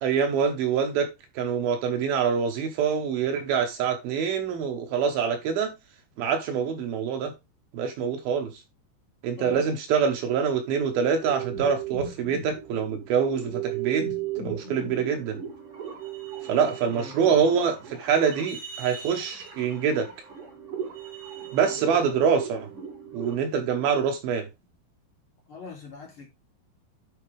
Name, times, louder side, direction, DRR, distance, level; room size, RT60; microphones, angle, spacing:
voice 1, 0.0-1.1 1.4-5.7 6.2-7.3 7.7-8.5 9.2-14.1 14.4-15.4 16.5-20.1 21.5-22.7 23.1-24.5, right 6 dB, 75° right, 2.3 m, -25 dB
voice 2, 9.4-9.7 16.5-17.4 21.6-21.8 25.5-26.2, left 5 dB, 30° left, 3.2 m, -44 dB
sound 1, 11.2-23.4, right 8 dB, 30° right, 5.8 m, -36 dB
10.0 x 5.7 x 3.4 m
omnidirectional pair, 5.7 m